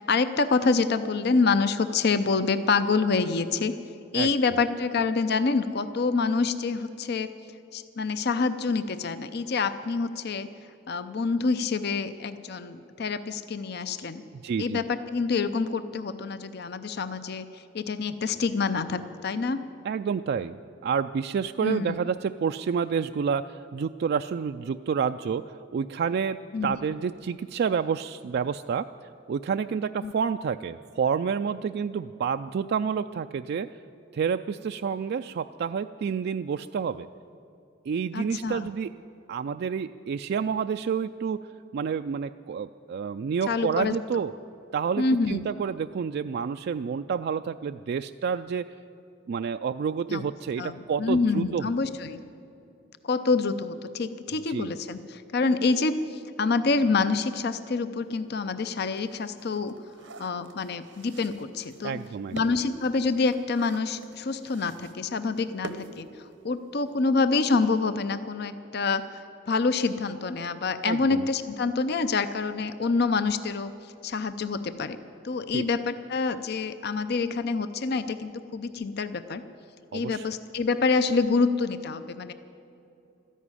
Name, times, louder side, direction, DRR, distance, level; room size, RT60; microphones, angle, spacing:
voice 1, 0.0-3.8 4.1-7.3 7.7-10.5 10.9-14.2 14.6-19.6 21.6-22.0 26.5-26.8 30.0-30.1 38.1-38.7 43.5-43.9 45.0-45.4 50.1-50.2 50.6-52.2 53.0-59.8 60.2-62.0 62.3-69.2 69.5-73.7 74.0-75.0 75.2-79.4 79.9-82.3, left 4 dB, 60° left, 11 dB, 0.6 m, -27 dB
voice 2, 4.1-4.6 14.3-14.8 19.8-20.6 20.8-28.9 29.3-33.8 34.1-37.1 37.9-38.9 39.3-44.3 44.7-48.7 49.3-51.7 54.5-54.7 61.8-62.4 70.8-71.3 75.5-75.6 79.9-80.3, right 6 dB, 60° right, 8 dB, 0.3 m, -29 dB
sound 1, 58.1-58.2 58.7-66.7 67.0-67.1 67.4-67.7, right 3 dB, 85° right, 1.0 m, -46 dB
13.5 x 11.0 x 9.8 m, 2.8 s
head